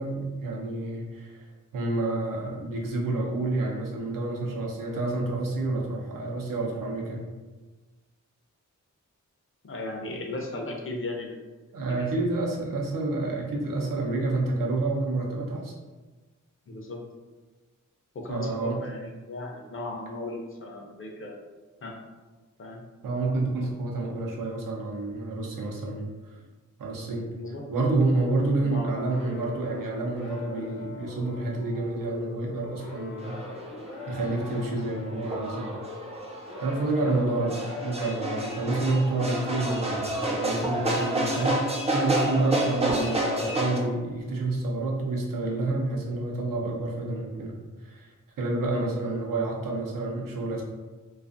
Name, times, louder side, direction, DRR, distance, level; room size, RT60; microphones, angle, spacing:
voice 1, 0.0-7.3 11.7-15.7 18.3-18.8 23.0-26.4 26.8-27.3 27.7-33.4 34.1-35.7 36.6-50.6, right 2 dB, 85° right, -2 dB, 0.6 m, -29 dB
voice 2, 9.6-11.4 11.8-12.1 16.7-17.0 18.1-21.4 21.8-22.0 22.6-22.8 27.3-27.6 28.6-29.0 37.0-37.3 48.7-48.8, left 2 dB, 40° left, 1 dB, 0.5 m, -36 dB
sound 1, 28.8-44.1, left 5 dB, 70° left, 0.8 m, -43 dB
sound 2, 33.2-43.8, right 1 dB, 20° right, 0.4 m, -30 dB
2.4 x 2.4 x 2.5 m, 1.3 s
wide cardioid pair, 120°, 32 cm